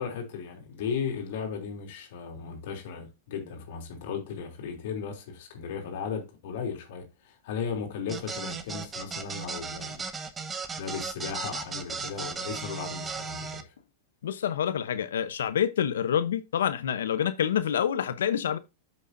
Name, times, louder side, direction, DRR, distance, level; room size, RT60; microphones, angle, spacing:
voice 1, 0.0-10.0 10.8-13.7, left 6 dB, 60° left, 3.2 m, -36 dB
sound 1, 8.1-13.6, right 5 dB, 15° right, 1.0 m, -36 dB
voice 2, 14.2-18.6, left 9 dB, 85° left, 0.8 m, -27 dB
8.6 x 6.3 x 2.6 m
hypercardioid pair, 135°, 0 cm